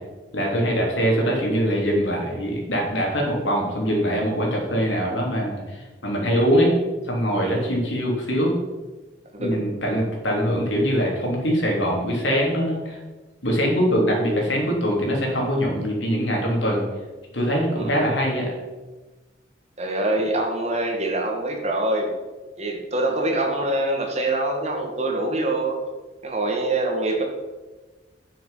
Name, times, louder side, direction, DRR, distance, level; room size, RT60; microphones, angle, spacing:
voice 1, 0.3-6.8 7.1-8.5 9.4-13.0 13.4-16.8 17.3-18.6, equal, 90° left, -1 dB, 3.3 m, -23 dB
voice 2, 7.4-7.7 9.3-9.6 17.7-18.0 19.8-22.1 22.6-25.8 26.2-27.2, right 2 dB, 35° right, 2 dB, 1.8 m, -25 dB
9.1 x 7.7 x 5.7 m, 1.2 s
head